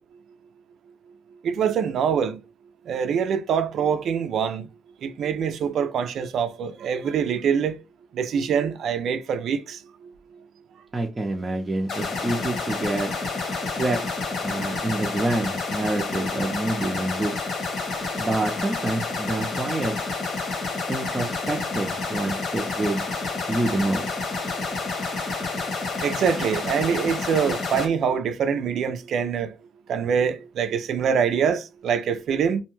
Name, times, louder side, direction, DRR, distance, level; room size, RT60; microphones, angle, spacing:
voice 1, 1.4-2.4 2.9-4.7 5.0-7.8 8.1-9.8 26.0-29.5 29.9-32.6, right 7 dB, 70° right, 0.4 m, -24 dB
voice 2, 10.9-13.1 13.7-14.0 14.4-17.3 18.2-19.9 20.9-23.0 23.5-24.1, right 2 dB, 20° right, 0.5 m, -27 dB
sound 1, 11.9-27.9, left 3 dB, 65° left, 1.2 m, -29 dB
2.7 x 2.2 x 3.0 m
cardioid pair, 90°, 0 cm